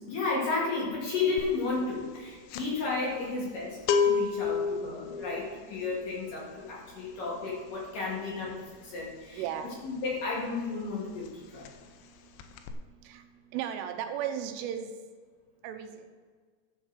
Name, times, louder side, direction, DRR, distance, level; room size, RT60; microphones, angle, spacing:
voice 1, 0.0-9.4 9.8-11.7, left 4 dB, 55° left, -5 dB, 2.8 m, -33 dB
sound 1, 1.4-1.7 1.9-10.5 10.8-11.0 11.2-12.1 12.4-12.7, left 5 dB, 80° left, 2.8 m, -32 dB
voice 2, 9.4-9.8 13.0-13.2 13.5-14.9 15.6-16.1, right 9 dB, 85° right, 7 dB, 3.2 m, -35 dB
12.0 x 5.2 x 6.5 m, 1.5 s
omnidirectional pair, 5.8 m